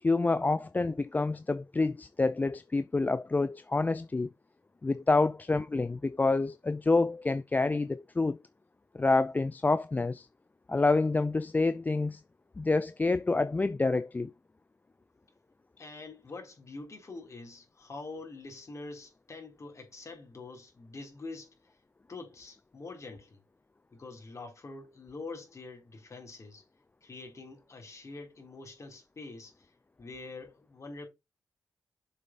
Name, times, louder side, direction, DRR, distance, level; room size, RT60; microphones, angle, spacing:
voice 1, 0.0-4.3 4.8-8.4 8.9-10.3 10.7-12.2 12.6-14.3, left 3 dB, 25° left, 0.4 m, -27 dB
voice 2, 15.8-21.5 22.1-23.4 23.9-26.6 27.0-29.7 30.0-31.1, left 3 dB, 45° left, 4.0 m, -45 dB
7.3 x 5.2 x 4.1 m
cardioid pair, 70°, 7 cm